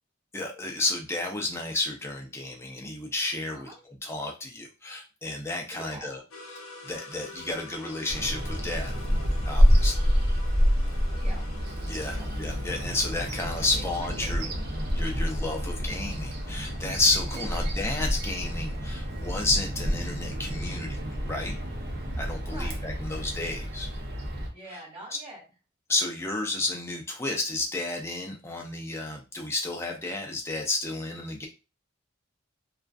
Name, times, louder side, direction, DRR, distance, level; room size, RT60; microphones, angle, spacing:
voice 1, 0.3-6.2 6.8-8.9 9.5-10.0 11.9-14.4 15.0-21.0 21.2-21.6 22.2-23.9 25.9-31.5, left 2 dB, 10° left, 1 dB, 0.4 m, -31 dB
voice 2, 5.7-6.2 11.1-11.5 12.1-12.3 13.6-14.6 15.6-15.7 17.3-17.8 22.4-22.9 24.5-25.4, right 2 dB, 25° right, -5 dB, 1.3 m, -45 dB
sound 1, 6.3-22.7, left 2 dB, 85° left, 0.5 m, -49 dB
Bird vocalization bird call bird song, 8.1-24.5, equal, 50° right, 0.5 m, -28 dB
2.4 x 2.3 x 2.3 m, 0.31 s
head